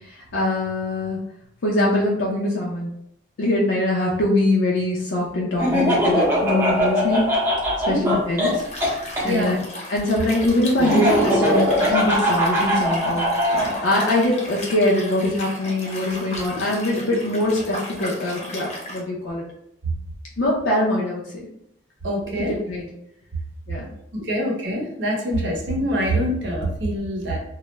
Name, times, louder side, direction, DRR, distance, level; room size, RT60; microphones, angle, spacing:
voice 1, 0.1-1.2 1.6-2.9 3.4-7.3 7.9-8.6 9.2-9.6 9.9-13.2 13.5-19.4 20.4-21.2 22.4-22.9 23.7-23.8 24.2-24.3 25.4-25.5, left 1 dB, 85° left, -4 dB, 0.5 m, -23 dB
Laughter, 5.6-9.3 10.8-13.7, equal, 10° right, 0.5 m, -21 dB
voice 2, 7.9-8.2 9.2-9.6 22.0-22.5 24.2-27.4, equal, 75° right, -1 dB, 0.7 m, -24 dB
Liquid, 8.4-19.0, left 1 dB, 35° left, 0.5 m, -36 dB
2.3 x 2.0 x 3.0 m, 0.75 s
head